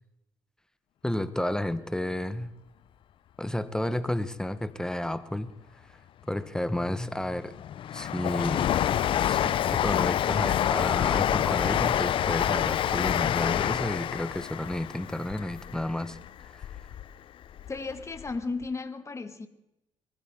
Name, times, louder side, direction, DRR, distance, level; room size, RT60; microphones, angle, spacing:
voice 1, 1.0-2.5 3.4-5.5 5.9-6.0 6.3-7.5 7.9-8.7 9.2-16.2 16.4-16.7, left 1 dB, 5° left, 1.3 m, -31 dB
Train, 6.8-17.0 17.4-18.4 18.6-18.7, left 10 dB, 60° left, 0.7 m, -27 dB
voice 2, 17.7-19.5, left 3 dB, 30° left, 2.0 m, -34 dB
24.0 x 15.5 x 3.8 m
supercardioid pair, 65°, 10 cm